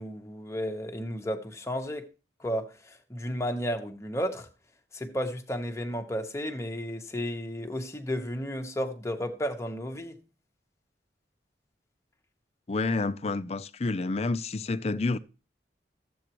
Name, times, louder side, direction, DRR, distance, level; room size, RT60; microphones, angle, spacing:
voice 1, 0.0-2.1 2.4-4.5 4.9-10.2, equal, 15° left, 1.0 m, -33 dB
voice 2, 12.7-15.2, left 3 dB, 35° left, 0.5 m, -29 dB
13.5 x 7.9 x 3.0 m
head